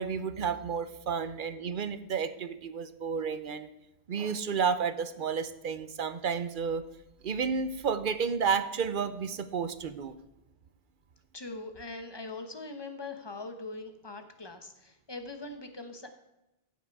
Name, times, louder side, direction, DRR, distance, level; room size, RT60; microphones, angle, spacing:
voice 1, 0.0-3.7 4.1-6.8 7.2-10.2, right 6 dB, 55° right, 12 dB, 0.8 m, -31 dB
voice 2, 11.3-16.1, left 3 dB, 25° left, 7 dB, 1.1 m, -42 dB
15.5 x 5.9 x 4.7 m, 0.97 s
omnidirectional pair, 1.1 m